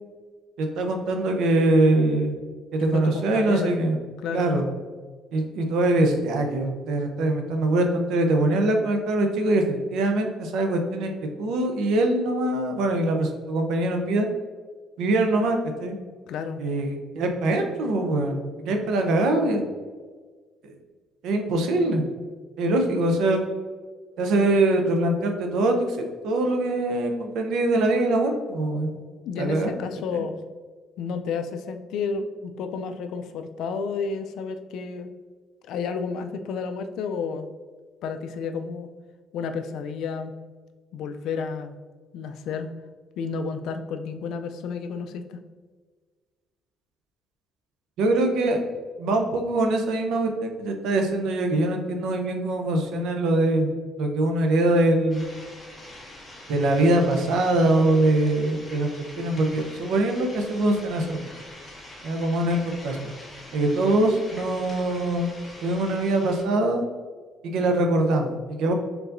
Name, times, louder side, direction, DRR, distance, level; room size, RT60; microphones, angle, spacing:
voice 1, 0.6-2.4 2.7-4.0 4.3-4.7 5.3-14.3 15.0-16.0 16.6-19.6 20.6-20.7 21.2-22.0 22.6-23.4 24.2-28.9 29.4-29.7 30.1-30.2 48.0-48.6 49.0-55.3 56.5-58.9 59.2-61.2 62.0-63.1 63.5-65.3 65.6-66.8 67.4-68.7, right 2 dB, 85° right, 4 dB, 0.6 m, -23 dB
voice 2, 2.9-3.8 4.2-4.5 16.3-16.6 29.2-30.4 31.0-35.1 35.6-37.5 38.0-38.9 39.3-40.3 40.9-41.8 42.1-42.7 43.2-45.4, left 5 dB, 75° left, 8 dB, 0.4 m, -31 dB
sound 1, 55.1-66.4, left 1 dB, 15° left, 1.4 m, -44 dB
4.6 x 3.9 x 2.6 m, 1.5 s
cardioid pair, 145°, 0 cm